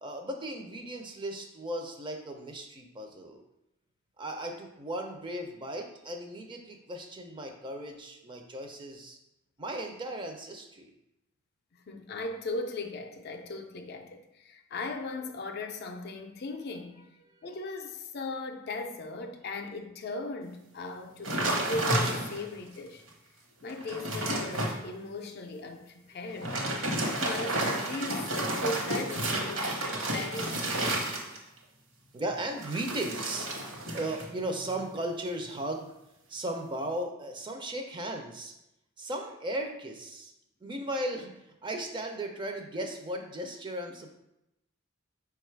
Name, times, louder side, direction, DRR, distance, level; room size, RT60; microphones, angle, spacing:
voice 1, 0.0-3.4 4.2-9.2 9.6-10.9 17.3-17.5 26.1-26.5 32.1-35.9 36.3-38.5 39.0-40.3 40.6-44.2, right 1 dB, 25° right, 4 dB, 0.4 m, -36 dB
voice 2, 11.7-17.1 17.4-23.0 23.6-31.1, left 2 dB, 50° left, 5 dB, 0.4 m, -38 dB
sound 1, 21.2-22.6 23.1-23.2 23.6-24.8 26.3-31.6 32.6-34.3 34.6-35.0, right 1 dB, 65° right, 1.0 m, -31 dB
5.1 x 2.3 x 4.4 m, 0.86 s
head